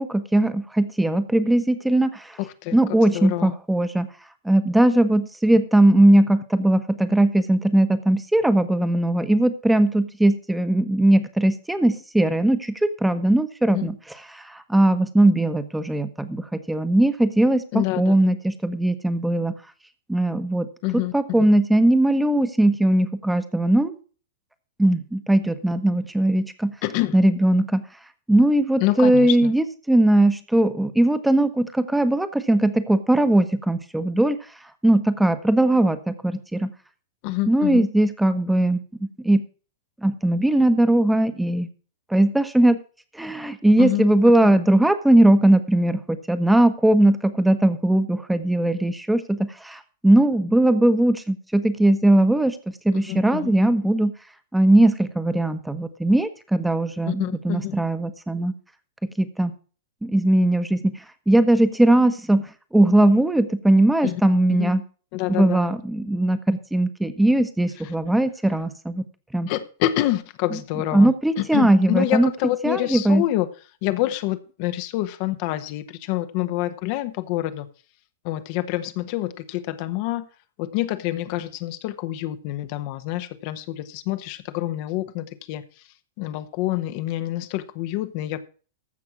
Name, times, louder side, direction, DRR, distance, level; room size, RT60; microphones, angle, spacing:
voice 1, 0.0-2.4 2.7-4.1 4.4-13.9 14.4-19.5 20.1-20.7 20.9-23.9 24.8-26.7 27.1-27.8 28.3-34.4 34.8-36.7 37.5-38.8 39.2-39.4 40.0-41.7 42.1-42.8 43.1-52.6 52.8-54.1 54.5-58.5 59.2-59.5 60.0-60.8 61.3-62.4 62.7-64.8 65.3-69.0 69.3-69.5 70.9-72.3 72.6-73.2, right 1 dB, 5° right, 1.2 m, -19 dB
voice 2, 2.4-3.5 13.7-13.9 17.7-18.1 20.8-21.4 26.8-27.2 28.8-29.5 37.2-37.9 43.8-44.1 44.4-44.5 52.9-53.5 57.1-57.8 64.0-64.2 64.5-64.7 65.1-65.7 69.5-73.5 73.8-77.7 78.2-80.3 80.6-85.6 86.2-88.4, left 15 dB, 50° left, 1.2 m, -27 dB
14.5 x 6.0 x 6.0 m
hypercardioid pair, 105°, 0 cm